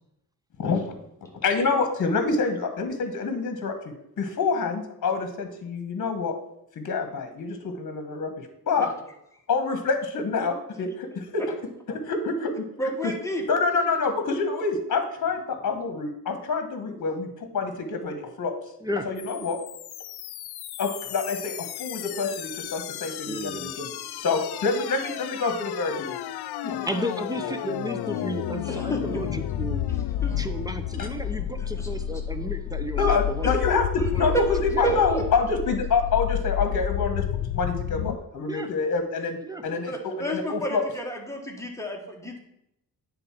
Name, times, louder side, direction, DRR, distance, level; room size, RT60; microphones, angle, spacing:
voice 1, 1.4-3.7 4.2-6.3 6.8-8.9 9.5-11.4 11.9-12.6 13.0-13.1 13.5-17.3 17.5-18.5 19.0-19.6 20.8-23.9 24.2-26.2 33.0-37.3 37.5-40.8, left 4 dB, 55° left, 6 dB, 1.3 m, -27 dB
voice 2, 12.8-13.4 24.3-24.4 26.6-26.7 28.7-29.2 30.2-30.4 31.8-31.9 33.4-33.5 34.2-34.3 34.6-35.2 39.9-42.4, equal, 10° left, 0 dB, 1.6 m, -31 dB
sound 1, 19.2-38.2, left 11 dB, 85° left, 0.5 m, -31 dB
voice 3, 23.3-23.7 26.9-29.8 30.4-33.6 34.1-34.3 34.7-35.0 38.5-38.7 39.4-39.6, equal, 10° right, 7 dB, 0.7 m, -33 dB
9.3 x 3.9 x 5.9 m, 0.80 s
cardioid pair, 100°, 38 cm